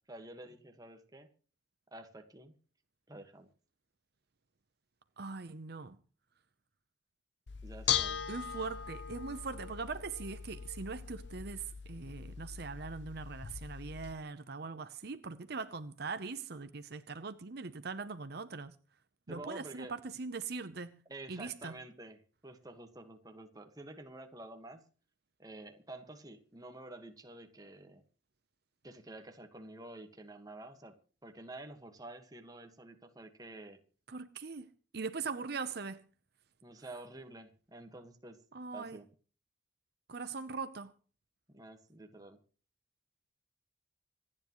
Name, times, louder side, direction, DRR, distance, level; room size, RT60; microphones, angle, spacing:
voice 1, 0.1-1.3 1.9-2.5 3.1-3.5 7.6-8.2 19.3-19.9 21.1-24.8 25.4-28.0 28.8-30.9 31.2-33.8 36.6-38.4 38.7-39.1 41.5-42.4, right 2 dB, 20° right, 1.6 m, -49 dB
voice 2, 5.2-6.0 8.3-18.7 19.3-21.0 21.3-21.7 34.1-34.7 34.9-36.1 38.5-39.0 40.1-40.9, right 4 dB, 60° right, 0.8 m, -41 dB
Bell / Dishes pots and pans, 7.5-14.1, left 8 dB, 70° left, 0.8 m, -39 dB
26.0 x 9.6 x 3.1 m
head